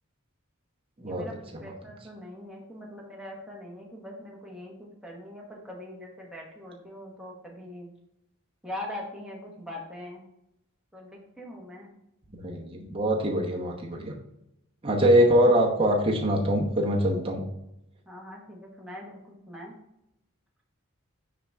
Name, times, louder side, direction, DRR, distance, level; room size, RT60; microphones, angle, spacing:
voice 1, 1.0-1.3 1.6-7.9 8.6-10.2 10.9-11.9 18.1-19.7, left 1 dB, 5° right, -3 dB, 1.2 m, -42 dB
voice 2, 12.4-14.1 14.8-17.4, equal, 25° right, -1 dB, 0.9 m, -23 dB
5.8 x 4.9 x 3.4 m, 0.83 s
head